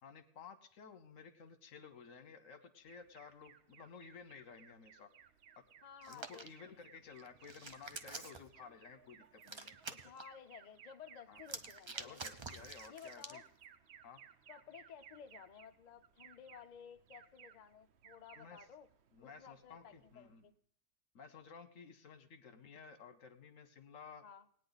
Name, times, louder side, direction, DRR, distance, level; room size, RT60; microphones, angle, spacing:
voice 1, 0.0-5.1 5.6-5.7 6.1-9.7 11.3-11.4 12.0-13.4 14.0-14.2 18.3-18.6 19.1-20.4 21.1-24.2, left 6 dB, 70° left, 10 dB, 1.3 m, -55 dB
Alarm, 2.9-20.5, right 8 dB, 60° right, 0.9 m, -62 dB
voice 2, 5.8-6.7 9.9-12.3 12.9-13.4 14.5-18.9 19.2-20.5 24.2-24.4, left 7 dB, 45° left, 8 dB, 0.6 m, -55 dB
Hands, 6.0-6.5 7.2-8.5 9.4-10.2 11.4-13.4, right 4 dB, 35° right, 0.5 m, -47 dB
19.5 x 9.2 x 4.0 m, 0.64 s
omnidirectional pair, 1.4 m